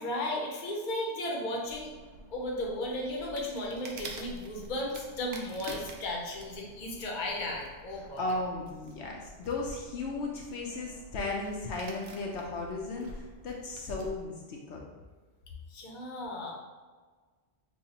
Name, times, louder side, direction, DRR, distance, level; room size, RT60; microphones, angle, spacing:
voice 1, 0.0-1.9 2.3-8.4 15.7-16.6, left 1 dB, 50° left, -1 dB, 0.8 m, -35 dB
sound 1, 1.6-14.3, right 2 dB, 70° right, 0.8 m, -48 dB
voice 2, 8.2-14.8, left 3 dB, 75° left, -1 dB, 0.9 m, -35 dB
5.6 x 2.3 x 2.8 m, 1.4 s
omnidirectional pair, 1.2 m